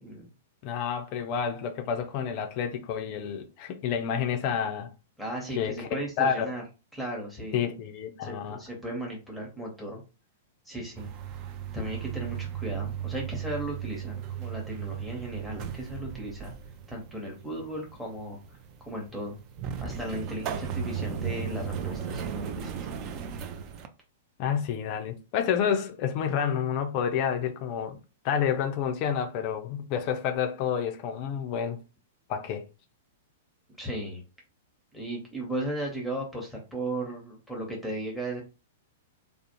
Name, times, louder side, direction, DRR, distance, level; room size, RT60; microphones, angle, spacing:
voice 1, 0.6-4.9 5.6-6.5 7.5-8.6 24.4-28.0 28.2-31.8 32.3-32.7, left 8 dB, 40° left, 0.4 m, -29 dB
voice 2, 5.2-6.6 6.9-7.6 8.2-10.0 10.6-11.1 11.7-16.5 16.9-18.6 18.9-19.4 19.8-22.9 33.8-34.2 34.9-38.4, right 1 dB, ahead, 0.8 m, -36 dB
sound 1, 10.9-23.9, right 8 dB, 35° right, 0.3 m, -36 dB
2.4 x 2.0 x 2.8 m
figure-of-eight pair, 100°, 0 cm